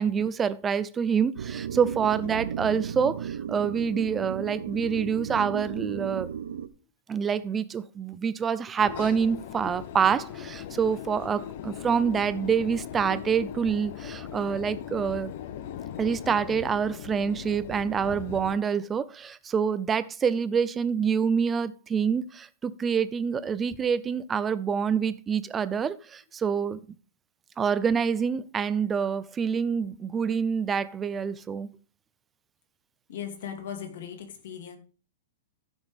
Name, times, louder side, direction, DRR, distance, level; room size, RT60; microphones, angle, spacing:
voice 1, 0.0-6.3 7.1-15.3 16.0-26.8 27.6-31.7, right 6 dB, 10° right, 0.4 m, -27 dB
sound 1, 1.4-6.7, right 8 dB, 85° right, 0.7 m, -34 dB
sound 2, 8.8-18.6, left 10 dB, 45° left, 0.7 m, -39 dB
voice 2, 33.1-34.8, left 8 dB, 60° left, 2.4 m, -38 dB
14.5 x 6.2 x 3.5 m
supercardioid pair, 175°, 0 cm